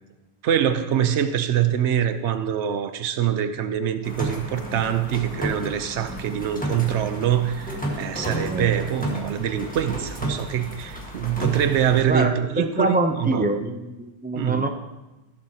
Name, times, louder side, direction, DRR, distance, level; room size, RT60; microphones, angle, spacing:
voice 1, 0.4-13.5 14.3-14.7, right 9 dB, 80° right, 10 dB, 1.0 m, -24 dB
sound 1, 4.0-12.0, equal, 5° left, 1.4 m, -32 dB
voice 2, 12.0-14.7, right 2 dB, 10° right, 5 dB, 0.4 m, -25 dB
14.0 x 7.4 x 2.8 m, 1.0 s
omnidirectional pair, 1.2 m